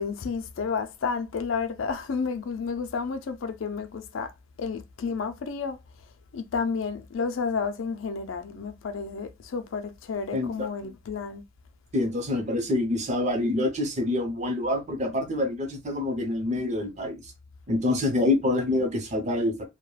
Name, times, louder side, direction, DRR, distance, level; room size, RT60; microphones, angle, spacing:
voice 1, 0.0-4.3 4.6-5.8 6.3-11.4, left 5 dB, 85° left, 0.4 m, -31 dB
voice 2, 10.3-10.7 11.9-17.3 17.7-19.6, left 2 dB, 35° right, 0.6 m, -26 dB
2.2 x 2.1 x 3.1 m
head